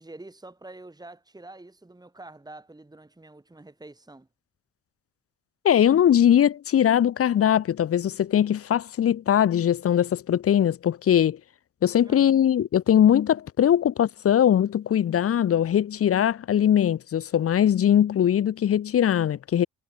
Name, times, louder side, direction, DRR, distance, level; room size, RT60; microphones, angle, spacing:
voice 1, 0.0-4.3 12.0-12.3, right 2 dB, 15° right, 4.1 m, -46 dB
voice 2, 5.6-11.4 11.8-19.7, left 10 dB, 50° left, 0.9 m, -21 dB
cardioid pair, 90°, 30 cm